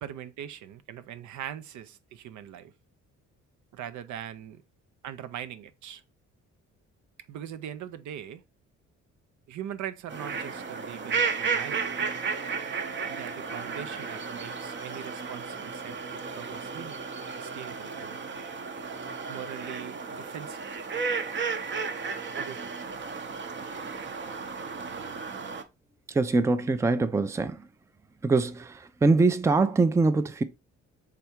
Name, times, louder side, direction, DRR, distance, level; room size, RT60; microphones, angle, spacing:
voice 1, 0.0-2.7 3.7-4.6 5.0-6.0 7.3-8.4 9.5-12.1 13.1-16.0 16.3-17.0 17.4-18.2 19.3-20.7 22.3-22.7, right 10 dB, 75° right, 0.5 m, -41 dB
sound 1, 10.1-25.6, right 5 dB, 40° right, 0.7 m, -34 dB
voice 2, 26.1-27.7 28.2-30.4, right 3 dB, 10° right, 0.4 m, -23 dB
3.5 x 3.4 x 4.4 m
cardioid pair, 90°, 30 cm